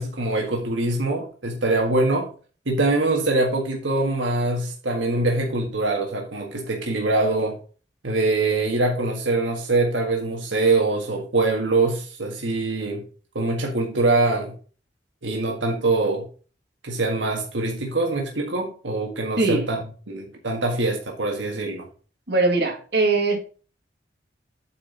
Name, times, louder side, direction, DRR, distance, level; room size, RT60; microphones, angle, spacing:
voice 1, 0.0-2.3 2.6-7.6 8.0-13.0 13.3-14.5 15.2-16.3 16.8-19.8 20.1-21.9, right 2 dB, 80° right, 1.6 m, -23 dB
voice 2, 19.4-19.7 22.3-23.4, right 3 dB, 60° right, 2.2 m, -21 dB
8.6 x 4.5 x 5.4 m
head